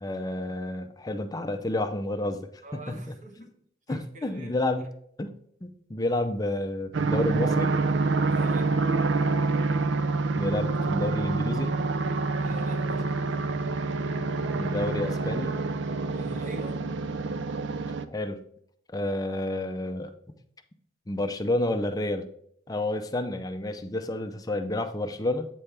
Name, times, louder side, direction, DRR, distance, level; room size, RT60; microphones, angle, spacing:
voice 1, 0.0-2.5 3.9-4.9 5.2-5.3 5.6-7.7 10.4-11.7 14.5-15.5 18.1-18.4 18.9-20.1 21.1-22.3 22.7-25.5, left 1 dB, 20° left, 0.4 m, -30 dB
voice 2, 2.6-3.5 3.9-4.5 8.3-8.8 12.4-13.2 16.1-16.9, right 1 dB, 35° right, 1.1 m, -43 dB
sound 1, 6.9-18.0, right 3 dB, 60° right, 0.4 m, -27 dB
8.3 x 3.4 x 5.6 m
head